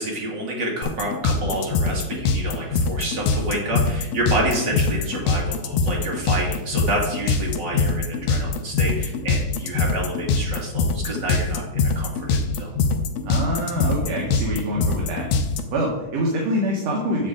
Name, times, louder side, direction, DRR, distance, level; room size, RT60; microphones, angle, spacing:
voice 1, 0.0-12.7, right 1 dB, 40° right, -3 dB, 2.4 m, -28 dB
sound 1, 0.8-15.6, left 4 dB, 75° left, 1.7 m, -22 dB
voice 2, 13.3-15.3 15.7-17.3, equal, 65° right, -2 dB, 2.3 m, -25 dB
8.5 x 7.6 x 3.7 m, 1.0 s
omnidirectional pair, 3.6 m